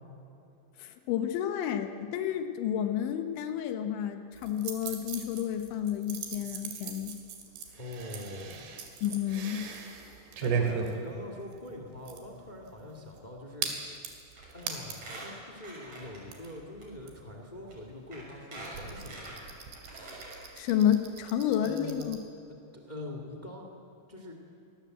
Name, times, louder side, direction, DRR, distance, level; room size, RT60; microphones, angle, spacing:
voice 1, 0.8-7.1 9.0-9.7 20.6-22.2, left 10 dB, 80° left, 7 dB, 3.6 m, -30 dB
sound 1, 4.3-15.2 15.5-15.6 15.8-22.2, right 6 dB, 70° right, 4.3 m, -39 dB
voice 2, 7.8-8.6 10.4-14.1 14.5-19.4 21.6-22.1 22.5-23.7 24.1-24.3, left 1 dB, 55° left, 2 dB, 0.4 m, -43 dB
Squeak, 14.4-14.6 14.9-16.5 16.8-16.9 17.7-17.8 18.1-20.4 20.8-20.9 21.1-21.2, right 2 dB, 40° right, 7.4 m, -45 dB
25.0 x 19.0 x 7.9 m, 2.8 s
omnidirectional pair, 5.3 m